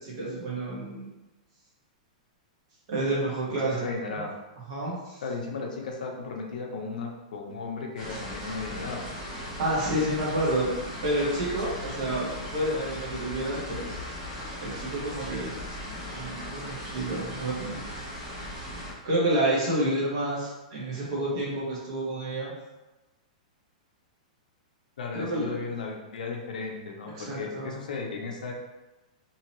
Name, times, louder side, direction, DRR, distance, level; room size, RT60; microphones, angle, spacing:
voice 1, 0.0-1.1 2.9-4.2 4.7-5.2 9.4-10.7 11.0-13.9 14.6-15.6 16.1-17.8 19.0-22.5 25.1-25.6 27.1-27.8, right 1 dB, 45° right, -5 dB, 1.4 m, -29 dB
voice 2, 3.5-4.3 5.2-9.1 25.0-28.5, left 4 dB, 85° left, 1 dB, 0.7 m, -35 dB
sound 1, 8.0-18.9, left 1 dB, 25° right, 1.0 m, -38 dB
3.7 x 2.8 x 3.0 m, 1.1 s
supercardioid pair, 175°, 4 cm